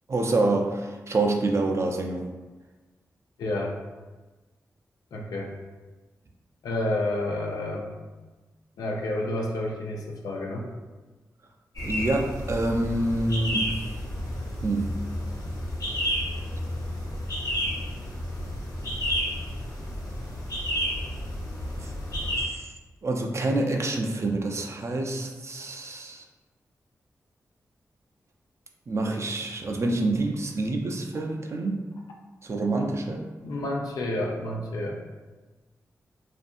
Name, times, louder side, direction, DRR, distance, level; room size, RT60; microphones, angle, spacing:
voice 1, 0.1-2.2 11.8-13.8 14.6-14.9 21.8-21.9 22.4-22.6 23.0-26.2 28.9-31.8 32.4-33.3 33.6-33.7, right 2 dB, 45° right, 2 dB, 0.4 m, -27 dB
voice 2, 3.4-3.8 5.1-5.5 6.6-7.9 8.8-10.6 31.1-31.2 32.7-32.9 33.4-35.0, left 1 dB, 85° left, 0 dB, 0.4 m, -30 dB
sound 1, 11.8-22.4, equal, 60° left, 0.8 m, -31 dB
2.6 x 2.5 x 2.4 m, 1.2 s
cardioid pair, 45°, 6 cm